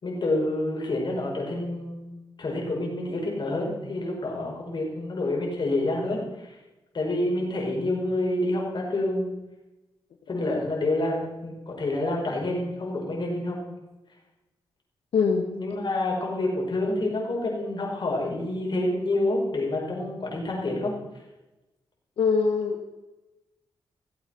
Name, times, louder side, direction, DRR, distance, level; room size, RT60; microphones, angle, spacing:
voice 1, 0.0-6.6 6.9-9.3 10.3-13.6 15.6-20.9, left 2 dB, 50° left, -2 dB, 5.3 m, -28 dB
voice 2, 15.1-15.6 22.2-22.8, left 5 dB, 85° left, 2 dB, 1.3 m, -23 dB
16.5 x 8.1 x 5.8 m, 1.0 s
cardioid pair, 75°, 9 cm